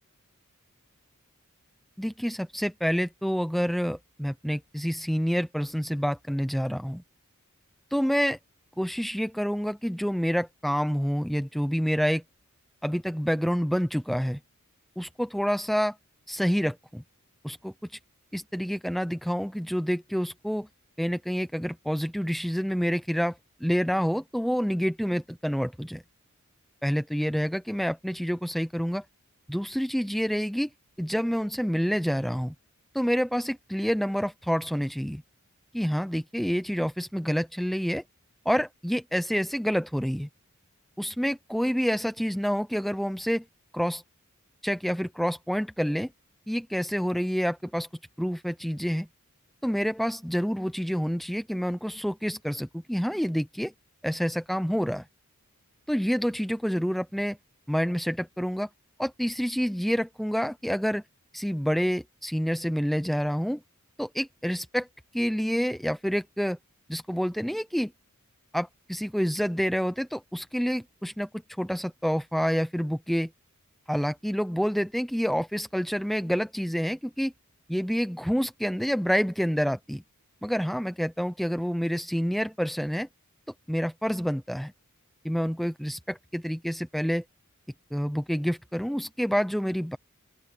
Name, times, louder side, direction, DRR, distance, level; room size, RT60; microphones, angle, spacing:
voice 1, 2.0-7.0 7.9-8.4 8.8-12.2 12.8-14.4 15.0-16.0 16.3-17.0 17.4-17.7 18.3-20.7 21.0-26.0 26.8-29.0 29.5-30.7 31.0-32.5 32.9-35.2 35.7-38.0 38.4-40.3 41.0-43.4 43.7-44.0 44.6-46.1 46.5-47.9 48.2-49.1 49.6-53.7 54.0-55.1 55.9-57.4 57.7-58.7 59.0-61.0 61.3-63.6 64.0-64.9 65.1-66.6 66.9-67.9 68.5-71.3 71.6-73.3 73.9-77.3 77.7-80.0 80.4-83.1 83.7-84.7 85.2-87.2 87.9-90.0, equal, ahead, 0.7 m, -28 dB
open air
head